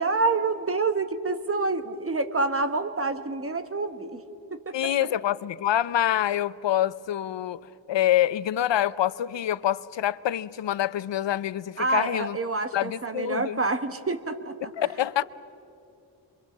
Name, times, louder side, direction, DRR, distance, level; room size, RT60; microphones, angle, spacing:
voice 1, 0.0-4.2 4.5-5.1 11.8-14.5, right 3 dB, 30° right, 1.2 m, -27 dB
voice 2, 4.7-7.6 7.9-12.4 12.7-13.6 14.8-15.2, left 12 dB, 70° left, 0.7 m, -26 dB
26.0 x 23.5 x 7.3 m
wide cardioid pair, 120°, 45 cm